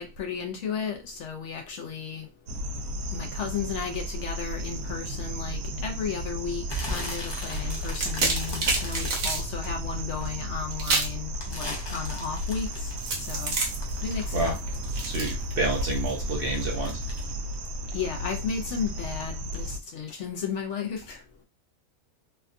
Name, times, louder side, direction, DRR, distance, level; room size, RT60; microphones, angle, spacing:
voice 1, 0.0-2.3 3.1-12.9 13.3-13.6 14.0-14.6 17.9-21.2, left 6 dB, 65° left, 0.8 m, -34 dB
sound 1, 2.5-19.8, equal, 90° right, 1.1 m, -34 dB
sound 2, 6.7-10.3 10.7-15.4 15.7-18.4 18.7-19.1 19.5-19.6, left 1 dB, 30° left, 0.4 m, -39 dB
sound 3, 7.7-9.4 10.8-11.2 13.0-16.1, right 3 dB, 70° right, 1.3 m, -29 dB
voice 2, 15.0-17.0, right 2 dB, 50° right, 0.8 m, -29 dB
3.3 x 2.2 x 2.4 m
omnidirectional pair, 1.4 m